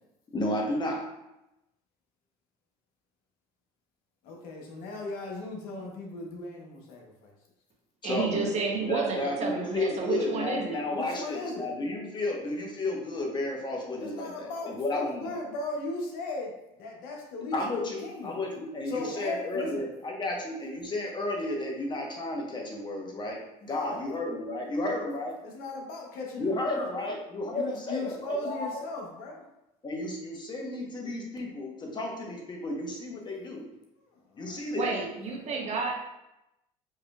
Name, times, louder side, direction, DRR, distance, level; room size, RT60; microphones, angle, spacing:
voice 1, 0.3-1.0 8.0-8.5 8.8-15.4 17.5-25.3 26.4-28.8 29.8-33.6 34.4-34.9, left 2 dB, 30° left, 0 dB, 1.0 m, -32 dB
voice 2, 4.2-7.3 10.9-11.7 14.0-16.5 16.8-18.4 18.9-19.9 20.3-20.4 23.7-24.1 25.4-27.1 27.5-29.4 34.3-34.6, left 2 dB, 75° left, -1 dB, 1.0 m, -37 dB
voice 3, 8.0-10.8 34.7-35.9, right 4 dB, 45° right, 1 dB, 0.9 m, -31 dB
4.7 x 3.0 x 2.3 m, 0.90 s
supercardioid pair, 95°, 15 cm